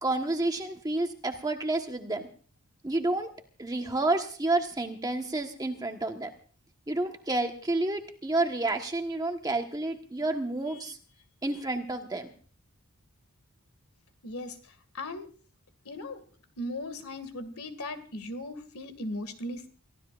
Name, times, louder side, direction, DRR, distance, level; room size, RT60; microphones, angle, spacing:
voice 1, 0.0-2.3 2.8-3.3 3.6-6.3 6.9-11.0 11.4-12.3, right 2 dB, 15° right, 4 dB, 1.3 m, -30 dB
voice 2, 14.2-15.3 15.9-16.2 16.6-19.7, left 1 dB, 75° left, 10 dB, 2.2 m, -38 dB
29.0 x 15.0 x 2.5 m, 0.43 s
head